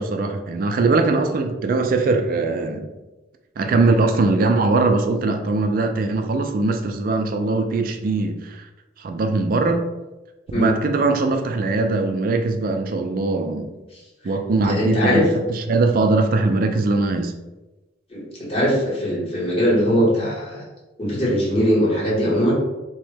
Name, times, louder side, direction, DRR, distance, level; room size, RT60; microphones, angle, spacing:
voice 1, 0.0-2.9 3.6-8.6 9.0-9.8 10.5-13.7 14.2-17.3, right 3 dB, 50° right, 6 dB, 0.3 m, -21 dB
voice 2, 14.6-15.2 18.1-20.6 21.0-22.5, equal, 30° left, -6 dB, 1.0 m, -21 dB
3.0 x 2.1 x 3.2 m, 1.1 s
head